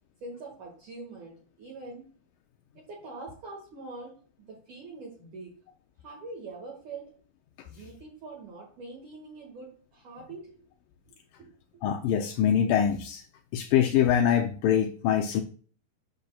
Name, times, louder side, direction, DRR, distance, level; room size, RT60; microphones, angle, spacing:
voice 1, 0.2-2.1 2.7-5.5 6.0-7.2 7.6-10.6 11.1-11.5, right 3 dB, 55° right, -2 dB, 2.9 m, -44 dB
voice 2, 11.8-13.2 13.5-15.4, left 9 dB, 85° left, 4 dB, 1.9 m, -24 dB
10.5 x 6.5 x 2.3 m, 0.41 s
omnidirectional pair, 4.5 m